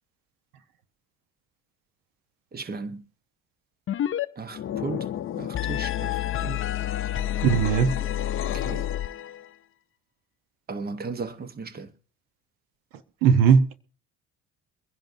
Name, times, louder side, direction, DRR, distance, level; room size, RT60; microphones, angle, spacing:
voice 1, 2.5-3.0 4.4-5.1 5.4-6.7 8.5-8.9 10.7-11.9, right 4 dB, 30° right, 1.0 m, -35 dB
sound 1, 3.9-4.2 4.5-9.5, left 12 dB, 40° left, 0.6 m, -29 dB
voice 2, 7.4-7.9 13.2-13.7, right 7 dB, 90° right, 1.0 m, -18 dB
23.5 x 10.5 x 2.7 m
cardioid pair, 95°, 33 cm